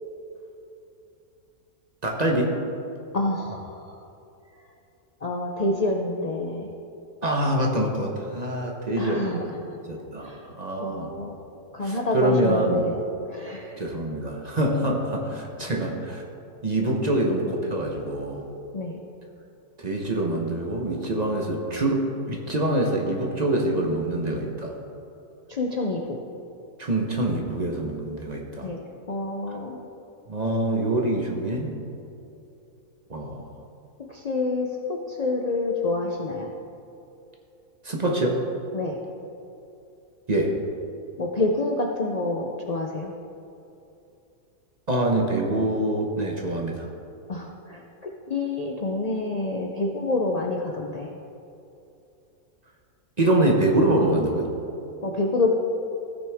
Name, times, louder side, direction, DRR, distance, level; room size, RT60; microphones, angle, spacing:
voice 1, 2.0-2.6 7.2-9.4 9.9-11.1 11.8-12.8 13.8-16.2 16.6-18.4 19.8-24.8 26.8-28.7 29.5-29.6 30.3-31.8 33.1-33.5 37.8-38.4 40.3-40.5 44.9-46.9 53.2-54.5, right 1 dB, 30° right, 0 dB, 0.9 m, -25 dB
voice 2, 3.1-4.0 5.2-6.7 9.0-9.8 10.2-10.4 10.8-11.4 11.7-12.9 13.3-13.8 18.7-19.0 25.5-26.2 28.6-28.8 29.1-29.8 34.1-36.5 38.7-39.0 41.2-43.1 47.3-51.1 55.0-55.6, left 2 dB, 70° left, 0 dB, 0.3 m, -28 dB
15.5 x 6.1 x 3.5 m, 2.7 s
omnidirectional pair, 1.6 m